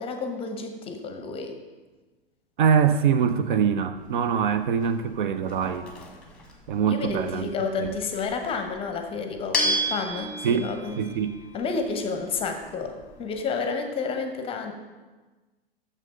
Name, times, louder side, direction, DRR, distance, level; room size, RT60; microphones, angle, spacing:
voice 1, 0.0-1.5 6.9-11.0 11.5-14.7, left 4 dB, 20° left, 5 dB, 0.7 m, -30 dB
voice 2, 2.6-5.9 6.7-7.4 7.8-7.9 10.4-10.6 11.0-11.3, right 7 dB, 55° right, 11 dB, 0.5 m, -23 dB
sound 1, 3.9-13.4, equal, 5° left, 1.2 m, -34 dB
6.5 x 6.3 x 5.1 m, 1.2 s
figure-of-eight pair, 105°, 30 cm